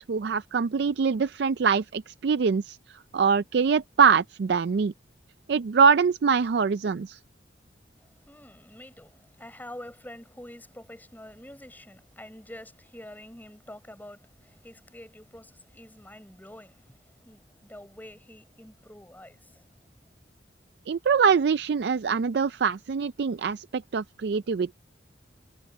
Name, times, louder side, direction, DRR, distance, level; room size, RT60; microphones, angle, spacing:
voice 1, 0.0-4.9 5.5-7.2 20.9-24.7, right 6 dB, 60° right, 0.4 m, -24 dB
voice 2, 8.0-19.9, left 1 dB, 10° left, 6.4 m, -47 dB
head